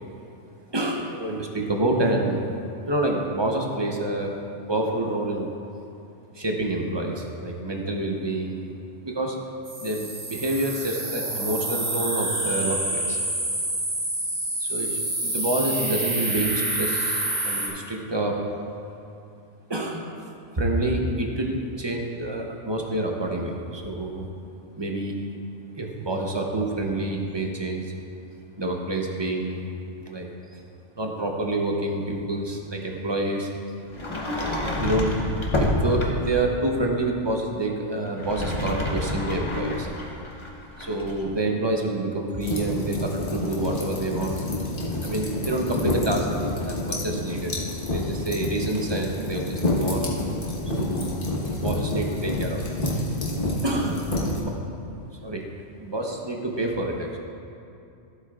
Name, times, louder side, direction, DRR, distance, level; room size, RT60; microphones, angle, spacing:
voice 1, 0.7-2.5 2.8-4.3 4.7-5.5 6.3-8.7 9.0-9.4 9.8-13.2 14.6-18.4 19.7-20.0 20.5-24.3 24.8-25.2 25.7-27.9 28.6-29.7 30.0-30.6 31.0-33.5 34.8-35.2 35.6-39.9 40.8-44.4 45.0-46.3 46.6-47.5 47.9-50.1 50.8-52.6 53.6-54.0 54.3-54.6 55.2-55.4 55.8-57.2, right 1 dB, 25° right, 1 dB, 0.7 m, -27 dB
sound 1, 9.6-17.7, right 1 dB, 65° right, 1.9 m, -28 dB
Sliding door, 33.9-36.4 38.1-41.2, left 1 dB, 25° left, 0.8 m, -28 dB
sound 2, 42.4-54.4, left 1 dB, 45° left, 1.4 m, -28 dB
14.5 x 8.1 x 2.4 m, 2.6 s
omnidirectional pair, 1.3 m